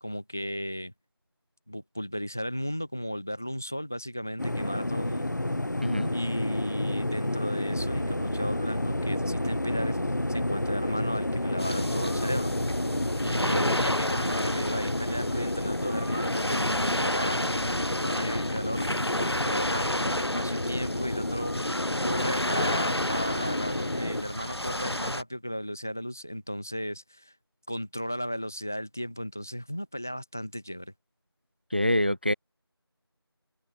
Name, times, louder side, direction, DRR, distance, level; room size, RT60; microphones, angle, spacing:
voice 1, 0.0-0.9 1.7-5.3 6.1-10.0 10.3-12.5 13.2-17.4 18.0-18.9 19.1-21.7 22.0-27.3 27.7-30.9, equal, 5° left, 1.2 m, -35 dB
sound 1, 4.4-24.2, left 1 dB, 45° left, 3.2 m, -31 dB
sound 2, 7.7-15.4, right 1 dB, 55° right, 5.8 m, -39 dB
sound 3, 11.6-25.2, left 1 dB, 80° left, 7.5 m, -31 dB
voice 2, 13.5-13.8 31.7-32.3, left 1 dB, 25° right, 0.7 m, -26 dB
figure-of-eight pair, 175°, 13 cm